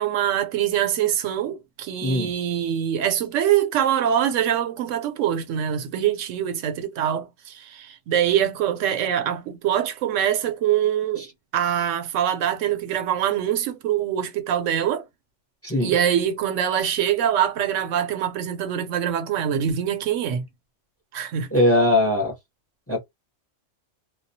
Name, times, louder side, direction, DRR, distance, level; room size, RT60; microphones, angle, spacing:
voice 1, 0.0-11.3 11.5-15.0 15.8-20.5 21.1-21.5, right 10 dB, 85° right, 0.9 m, -24 dB
voice 2, 2.0-2.3 15.6-15.9 21.5-22.3 22.9-23.0, left 1 dB, 15° left, 0.6 m, -20 dB
2.3 x 2.1 x 2.6 m
omnidirectional pair, 1.3 m